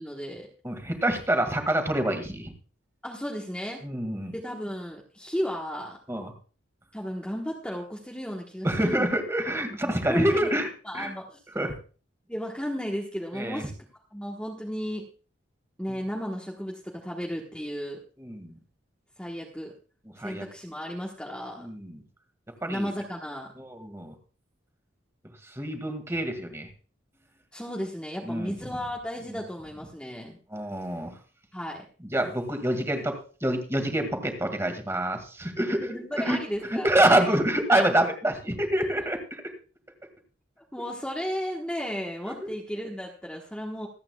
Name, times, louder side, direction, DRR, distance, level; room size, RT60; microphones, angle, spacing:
voice 1, 0.0-0.5 3.0-3.8 4.3-6.0 6.9-9.1 9.8-10.5 10.8-11.4 12.3-13.7 14.1-15.1 15.8-18.0 19.2-19.7 20.2-21.7 22.6-23.5 27.5-30.4 31.5-31.8 35.8-37.2 37.7-37.8 40.7-43.9, equal, 5° left, -2 dB, 1.3 m, -34 dB
voice 2, 0.6-2.5 3.8-4.3 6.1-6.3 8.6-10.7 10.9-11.1 11.5-11.7 13.3-13.6 15.9-16.0 18.2-18.5 20.2-20.5 21.6-22.0 22.6-22.9 23.6-24.1 25.6-26.7 28.2-28.5 29.3-29.4 30.5-31.1 32.1-35.9 36.1-36.4 36.7-39.4 42.3-42.5, right 1 dB, 15° right, 5 dB, 2.0 m, -26 dB
26.0 x 8.8 x 2.3 m, 0.37 s
head